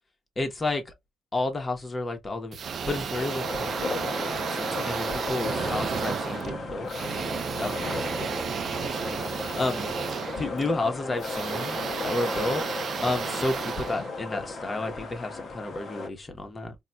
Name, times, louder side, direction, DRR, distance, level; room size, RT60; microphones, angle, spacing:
voice 1, 0.4-0.9 1.3-2.6 2.9-6.9 7.6-9.9 10.4-12.7 13.0-16.8, left 2 dB, 30° left, 0.9 m, -32 dB
sound 1, 2.5-14.7, right 6 dB, 55° right, 0.4 m, -33 dB
sound 2, 3.2-16.1, left 3 dB, 55° left, 0.7 m, -35 dB
4.1 x 2.3 x 2.2 m
cardioid pair, 90°, 0 cm